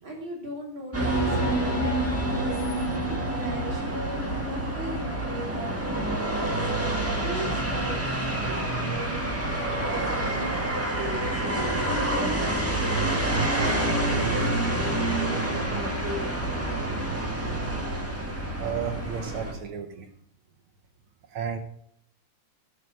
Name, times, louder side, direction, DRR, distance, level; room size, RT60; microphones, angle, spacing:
voice 1, 0.0-2.6 3.3-6.7 7.2-9.3 9.6-10.5 10.9-11.4 11.8-16.6, right 1 dB, 40° right, -3 dB, 4.3 m, -38 dB
sound 1, 0.9-19.5, right 1 dB, 5° right, 1.2 m, -27 dB
voice 2, 18.6-20.1 21.3-21.6, right 8 dB, 70° right, 6 dB, 1.3 m, -32 dB
13.0 x 5.8 x 6.3 m, 0.67 s
omnidirectional pair, 3.3 m